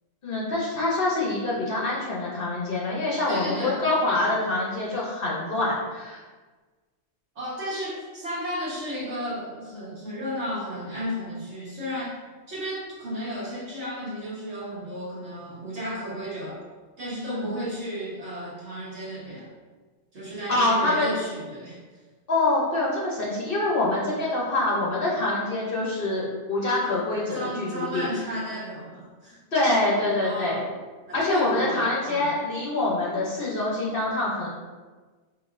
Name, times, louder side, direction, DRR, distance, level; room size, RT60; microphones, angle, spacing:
voice 1, 0.2-6.2 17.3-17.5 20.5-21.1 22.3-28.1 29.5-30.6 31.1-34.5, left 2 dB, 50° left, -5 dB, 0.9 m, -25 dB
voice 2, 3.3-3.8 7.3-12.2 12.5-16.6 17.0-19.5 20.1-21.8 27.3-29.4 30.2-30.7 31.1-32.3, equal, 60° right, -7 dB, 1.5 m, -33 dB
5.0 x 3.1 x 2.5 m, 1.3 s
omnidirectional pair, 1.4 m